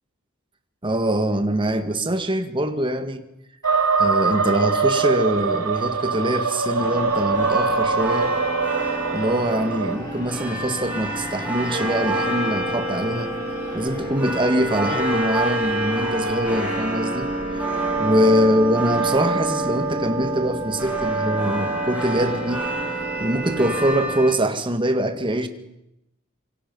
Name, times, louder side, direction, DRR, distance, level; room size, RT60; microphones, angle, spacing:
voice 1, 0.8-3.2 4.0-8.3 9.1-13.3 13.7-17.3 17.5-17.6 18.0-22.7 23.2-25.5, equal, 25° right, 1.8 m, -23 dB
sound 1, 3.6-15.9, left 1 dB, 15° left, 4.5 m, -41 dB
sound 2, 3.6-10.0, right 4 dB, 90° right, 1.2 m, -23 dB
sound 3, 6.8-24.4, right 2 dB, 10° right, 7.6 m, -27 dB
26.5 x 24.0 x 5.5 m
head